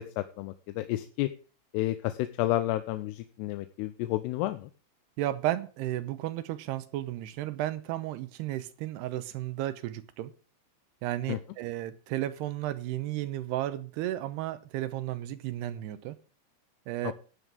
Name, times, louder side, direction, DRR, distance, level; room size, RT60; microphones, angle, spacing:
voice 1, 0.0-1.3 1.7-4.7 11.3-11.4 17.0-17.1, left 15 dB, 85° left, 2.7 m, -31 dB
voice 2, 5.2-10.3 11.0-16.2 16.9-17.1, right 14 dB, 85° right, 2.8 m, -33 dB
12.5 x 9.7 x 3.5 m
omnidirectional pair, 4.7 m